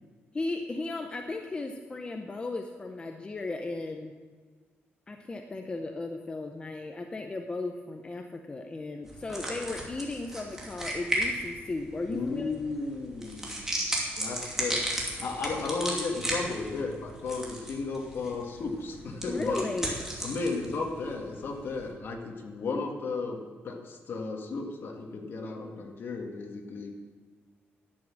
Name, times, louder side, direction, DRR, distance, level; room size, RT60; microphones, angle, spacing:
voice 1, 0.3-4.1 5.1-12.5 19.2-19.9, left 2 dB, 25° left, 4 dB, 0.7 m, -35 dB
sound 1, 9.0-21.9, right 1 dB, 10° right, 2.6 m, -36 dB
voice 2, 12.1-13.5 14.2-14.8 15.2-19.6 20.2-23.4 23.6-26.9, left 3 dB, 55° left, 2 dB, 1.8 m, -34 dB
11.0 x 8.5 x 7.4 m, 1.5 s
cardioid pair, 135°, 4 cm